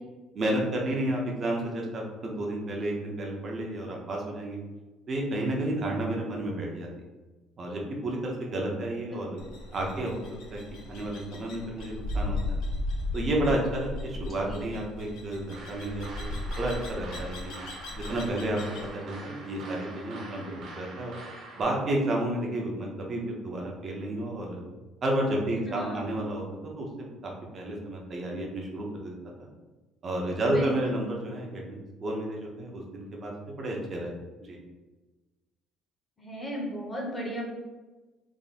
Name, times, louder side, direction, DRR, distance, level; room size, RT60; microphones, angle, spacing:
voice 1, 0.3-4.6 5.1-6.9 7.6-9.4 9.7-10.2 10.5-12.6 13.1-17.5 18.0-18.6 18.9-21.1 21.5-24.6 25.0-26.4 26.8-29.5 30.0-34.1 34.4-34.6, right 1 dB, 30° right, -1 dB, 0.7 m, -31 dB
sound 1, 9.4-18.9, left 2 dB, 90° left, 0.7 m, -36 dB
sound 2, 15.5-21.6, right 2 dB, 60° right, 1.2 m, -44 dB
voice 2, 25.7-26.0 30.3-30.7 36.2-37.4, equal, 15° left, -2 dB, 0.9 m, -35 dB
3.5 x 2.1 x 4.1 m, 1.2 s
cardioid pair, 160°, 0 cm